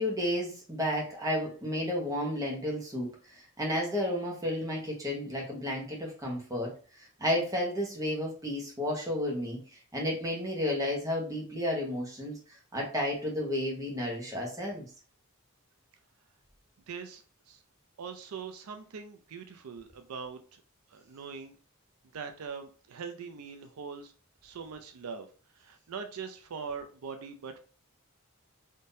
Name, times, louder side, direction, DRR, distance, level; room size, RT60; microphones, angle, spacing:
voice 1, 0.0-12.4 12.7-14.8, left 1 dB, 15° right, -2 dB, 1.0 m, -32 dB
voice 2, 16.9-17.6 18.0-20.6 20.9-21.6 22.1-24.1 24.4-25.3 25.6-27.6, right 5 dB, 75° right, 7 dB, 0.4 m, -42 dB
3.6 x 2.6 x 2.6 m, 0.37 s
head